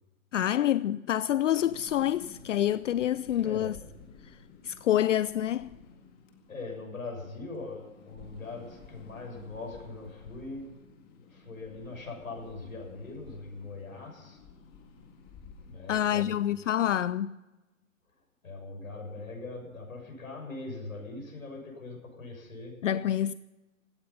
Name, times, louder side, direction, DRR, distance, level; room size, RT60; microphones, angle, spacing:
voice 1, 0.3-3.8 4.2-4.4 4.6-5.7 15.9-17.4 22.8-23.3, left 11 dB, 65° left, 0.5 m, -27 dB
sound 1, 1.6-16.9, left 5 dB, 20° left, 2.0 m, -53 dB
voice 2, 3.3-3.8 6.5-10.7 11.2-14.4 15.6-16.4 18.4-22.8, left 3 dB, 85° left, 7.1 m, -41 dB
17.0 x 14.5 x 5.7 m
hypercardioid pair, 145°, 41 cm